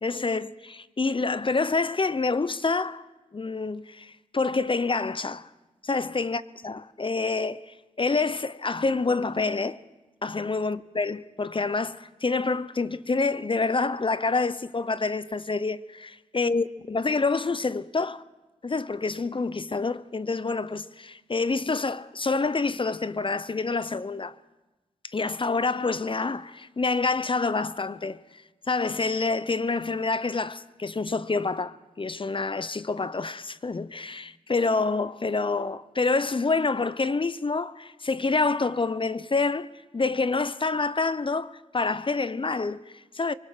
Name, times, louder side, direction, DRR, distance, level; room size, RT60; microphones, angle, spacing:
voice 1, 0.0-3.1 3.3-5.5 5.8-9.8 10.2-18.2 18.6-24.4 25.0-43.3, left 3 dB, 35° left, 0.8 m, -27 dB
24.5 x 19.5 x 5.9 m
supercardioid pair, 40°, 14 cm